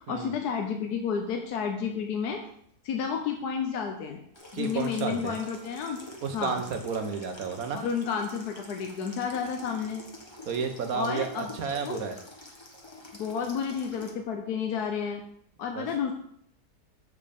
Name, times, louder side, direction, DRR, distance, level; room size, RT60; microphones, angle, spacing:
voice 1, 0.1-2.4 2.8-4.2 4.5-6.0 6.3-6.6 7.7-10.0 10.9-11.5 11.8-12.0 13.1-15.2 15.6-16.1, left 6 dB, 75° left, 3 dB, 1.3 m, -31 dB
Water tap faucet / Sink (filling or washing), 4.3-14.1, left 1 dB, 20° left, 1.2 m, -47 dB
voice 2, 4.5-5.4 6.2-7.8 10.4-12.2 15.7-15.9, right 5 dB, 65° right, 6 dB, 1.4 m, -32 dB
7.4 x 6.5 x 5.2 m, 0.70 s
omnidirectional pair, 1.7 m